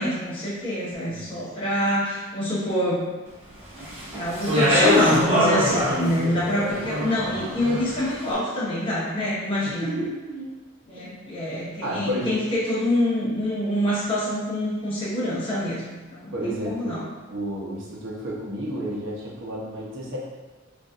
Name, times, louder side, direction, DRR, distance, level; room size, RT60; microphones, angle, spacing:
voice 1, 0.0-3.1 3.8-9.9 10.9-17.0, left 1 dB, 25° left, -10 dB, 1.0 m, -26 dB
Speech, 3.8-8.1, equal, 30° right, 0.9 m, -24 dB
voice 2, 10.9-11.3 11.8-12.4 16.3-16.9 17.3-20.2, equal, 60° right, -5 dB, 0.8 m, -31 dB
3.9 x 2.5 x 2.4 m, 1.3 s
head